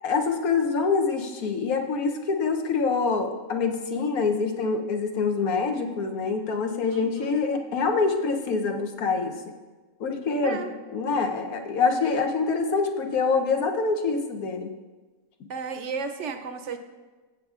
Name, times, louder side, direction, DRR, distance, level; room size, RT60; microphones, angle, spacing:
voice 1, 0.0-9.4 10.0-10.6 10.9-14.7, left 4 dB, 85° left, 4 dB, 1.4 m, -25 dB
voice 2, 6.9-7.4 10.4-10.7 15.5-16.8, right 5 dB, 65° right, 7 dB, 0.8 m, -34 dB
15.5 x 7.8 x 2.4 m, 1.3 s
omnidirectional pair, 1.5 m